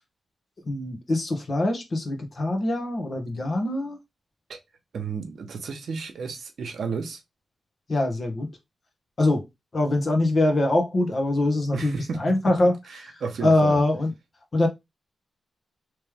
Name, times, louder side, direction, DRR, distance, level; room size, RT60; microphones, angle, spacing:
voice 1, 0.6-4.0 7.9-8.5 9.2-9.4 9.7-12.7 13.4-14.1 14.5-14.7, left 2 dB, 45° left, 1.2 m, -23 dB
voice 2, 4.9-7.2 11.7-12.4 12.9-13.8, right 5 dB, 75° right, 0.9 m, -32 dB
3.2 x 3.2 x 3.4 m
cardioid pair, 80°, 0 cm